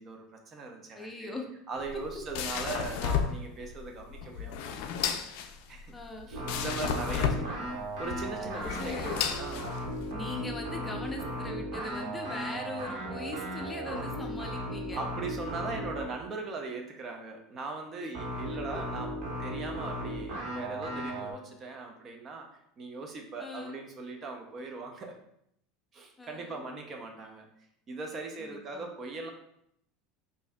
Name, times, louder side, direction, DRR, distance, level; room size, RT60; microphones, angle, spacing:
voice 1, 0.0-1.4 1.7-5.1 5.7-5.9 6.3-7.7 8.0-9.6 13.1-13.6 14.9-22.5 22.8-25.2 25.9-27.5 27.9-29.3, right 3 dB, 35° right, 3 dB, 0.6 m, -40 dB
voice 2, 0.9-1.5 5.9-6.3 8.4-9.2 10.1-15.0 18.0-18.1 18.7-18.8 23.4-23.8 26.2-26.6 28.4-28.9, left 2 dB, 15° left, 2 dB, 0.6 m, -40 dB
sound 1, 1.8-10.1, left 8 dB, 70° left, 0.3 m, -33 dB
sound 2, 6.3-16.2 18.1-21.3, equal, 60° right, 1.4 m, -36 dB
5.1 x 2.7 x 2.3 m, 0.73 s
supercardioid pair, 105°, 0 cm